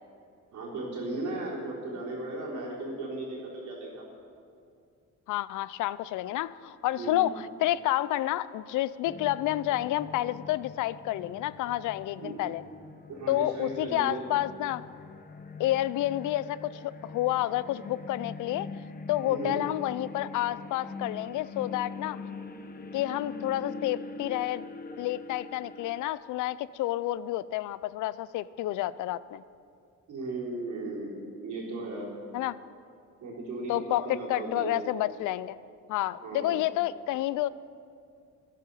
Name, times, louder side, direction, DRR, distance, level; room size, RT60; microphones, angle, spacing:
voice 1, 0.5-4.0 7.0-7.3 12.2-12.4 13.1-14.2 19.2-19.7 30.1-32.1 33.2-34.8 36.2-36.6, right 2 dB, 75° right, -4 dB, 3.9 m, -36 dB
voice 2, 5.3-12.6 13.3-14.8 15.6-18.7 19.1-22.2 22.9-24.6 25.0-29.4 32.3-32.6 33.7-35.6 35.9-37.5, left 14 dB, 80° left, 18 dB, 0.5 m, -29 dB
sound 1, 9.0-26.1, left 4 dB, 30° left, 0.9 m, -43 dB
13.5 x 10.5 x 5.6 m, 2.4 s
cardioid pair, 90°, 30 cm